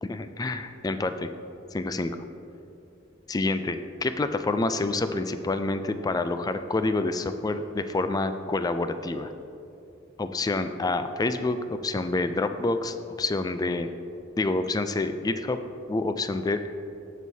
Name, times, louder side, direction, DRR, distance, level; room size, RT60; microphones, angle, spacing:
voice 1, 0.0-1.3 1.7-2.1 3.3-9.3 10.2-13.9 14.4-15.6 15.9-16.7, left 2 dB, 20° left, 9 dB, 0.4 m, -28 dB
16.0 x 6.3 x 2.7 m, 2.7 s
head